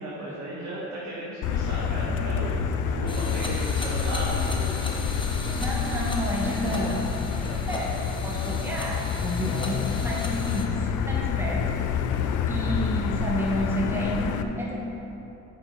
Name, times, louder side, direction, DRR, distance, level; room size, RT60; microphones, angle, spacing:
voice 1, 0.0-4.9 6.4-6.9 7.3-7.8, right 1 dB, 65° right, -7 dB, 1.6 m, -35 dB
Motor vehicle (road), 1.4-14.4, left 7 dB, 75° left, 0.5 m, -28 dB
sound 1, 3.1-10.7, left 2 dB, 15° left, 0.9 m, -38 dB
voice 2, 5.6-7.0 7.7-7.9 8.2-11.6 12.5-14.9, equal, 10° right, -4 dB, 1.4 m, -30 dB
7.0 x 5.8 x 4.7 m, 2.9 s
cardioid pair, 90°, 30 cm